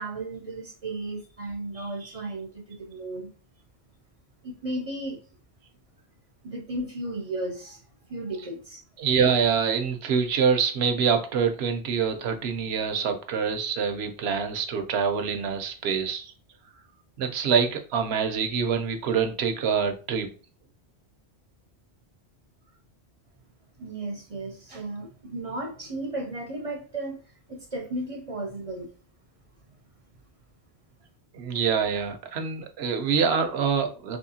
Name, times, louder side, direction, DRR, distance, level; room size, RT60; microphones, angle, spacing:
voice 1, 0.0-3.3 4.4-5.2 6.4-7.8 8.1-8.8 23.8-27.2 27.5-28.9, right 2 dB, 40° right, 0.5 m, -34 dB
voice 2, 9.0-16.3 17.2-20.3 31.3-34.2, right 6 dB, 70° right, 0.9 m, -25 dB
3.6 x 3.0 x 2.7 m
omnidirectional pair, 1.1 m